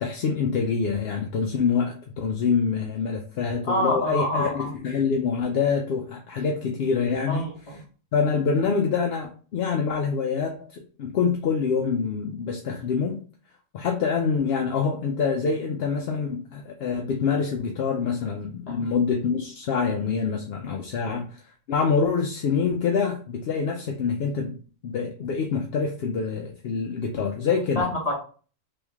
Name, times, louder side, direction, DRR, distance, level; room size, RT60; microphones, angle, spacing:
voice 1, 0.0-7.5 8.1-13.2 13.7-21.3 21.7-24.6 24.8-27.9, left 5 dB, 60° left, 2 dB, 0.7 m, -26 dB
voice 2, 3.6-4.7 7.3-7.8 18.7-18.8 21.0-21.2 27.7-28.1, left 1 dB, 30° left, -4 dB, 1.5 m, -27 dB
3.4 x 3.0 x 3.4 m, 0.40 s
omnidirectional pair, 1.4 m